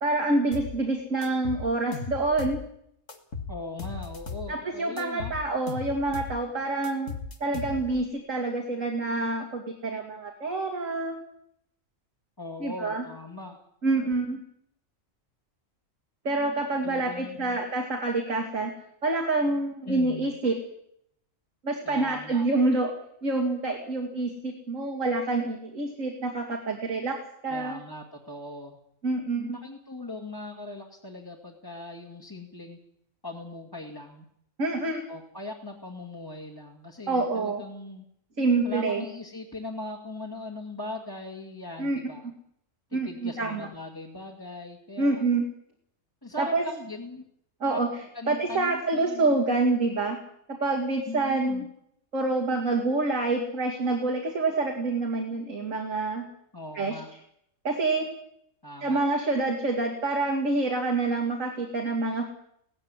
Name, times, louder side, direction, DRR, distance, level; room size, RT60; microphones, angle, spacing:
voice 1, 0.0-2.6 4.5-7.1 7.4-11.2 12.6-13.0 13.8-14.4 16.2-18.7 19.0-20.6 21.6-22.9 23.2-27.8 29.0-29.6 34.6-35.0 37.1-37.6 38.4-39.0 41.8-42.0 42.9-43.7 45.0-45.5 46.4-46.6 47.6-47.9 48.3-50.2 50.5-51.6 52.1-56.3 56.7-57.0 57.6-58.1 58.8-62.3, right 2 dB, 80° right, 0 dB, 2.9 m, -27 dB
sound 1, 0.5-0.8 1.2-2.6 3.1-4.5 5.0-6.4 6.8-8.1, left 4 dB, 70° left, 2.3 m, -37 dB
voice 2, 3.5-5.3 12.4-13.6 16.8-17.6 19.8-20.3 21.8-22.5 27.5-28.8 29.4-32.8 33.2-34.2 35.1-38.1 38.6-42.3 42.9-45.2 46.2-47.2 47.7-47.8 48.1-49.5 51.1-51.7 56.5-57.1 58.6-59.0, left 2 dB, 15° left, -2 dB, 2.2 m, -40 dB
17.5 x 15.0 x 9.9 m, 0.72 s
omnidirectional pair, 1.3 m